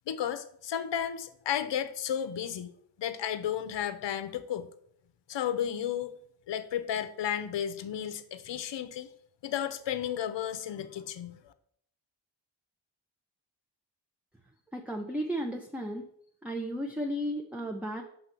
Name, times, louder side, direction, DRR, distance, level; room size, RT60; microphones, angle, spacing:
voice 1, 0.1-2.7 3.0-4.7 5.3-6.1 6.5-9.1 9.4-11.5, left 9 dB, 65° left, 11 dB, 0.7 m, -33 dB
voice 2, 14.7-16.1 16.4-18.0, equal, 5° right, 2 dB, 0.7 m, -34 dB
5.5 x 3.9 x 6.0 m, 0.67 s
cardioid pair, 50°, 47 cm